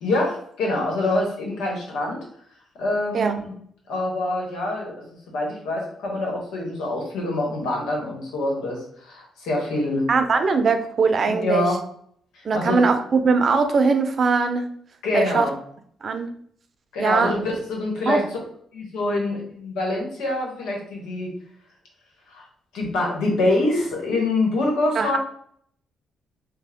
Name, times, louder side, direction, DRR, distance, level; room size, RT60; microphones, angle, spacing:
voice 1, 0.0-2.2 2.8-3.5 3.9-10.1 11.3-11.8 12.5-12.8 15.0-15.5 16.9-18.3 18.7-21.3 22.3-22.4 22.7-25.2, left 2 dB, 90° left, -1 dB, 1.2 m, -25 dB
voice 2, 10.1-11.7 12.4-14.7 15.1-15.5 16.0-16.3 17.0-17.3 18.1-18.2 25.0-25.2, right 4 dB, 45° right, 7 dB, 0.5 m, -20 dB
3.4 x 2.2 x 3.4 m, 0.64 s
cardioid pair, 90°, 0 cm